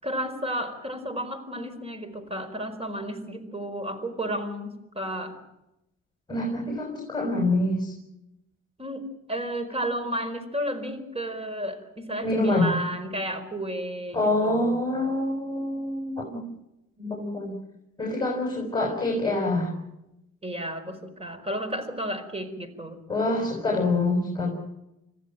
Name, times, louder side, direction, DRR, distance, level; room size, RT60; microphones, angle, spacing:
voice 1, 0.0-5.4 8.8-14.8 20.4-23.0, equal, 20° right, 11 dB, 4.7 m, -32 dB
voice 2, 6.3-7.9 12.2-12.7 14.1-16.4 17.0-17.5 18.0-19.7 23.1-24.5, left 2 dB, 15° left, 1 dB, 6.0 m, -26 dB
25.5 x 15.5 x 9.0 m, 0.89 s
cardioid pair, 90°, 30 cm